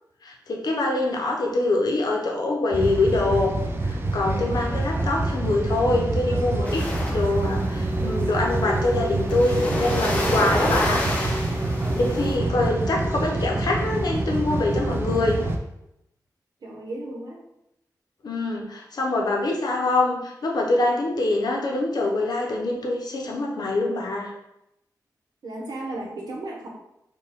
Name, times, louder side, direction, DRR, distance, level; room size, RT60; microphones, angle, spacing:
voice 1, 0.2-3.5 3.8-11.4 11.9-15.4 18.2-24.3, left 2 dB, 70° left, 0 dB, 0.7 m, -24 dB
sound 1, 2.7-15.6, right 2 dB, 35° right, 0.4 m, -26 dB
sound 2, 6.6-12.4, left 1 dB, 20° left, 0.6 m, -30 dB
voice 2, 11.7-12.1 16.6-17.4 25.4-26.7, right 2 dB, 70° right, -1 dB, 0.9 m, -35 dB
4.3 x 2.3 x 3.6 m, 0.85 s
wide cardioid pair, 160°, 7 cm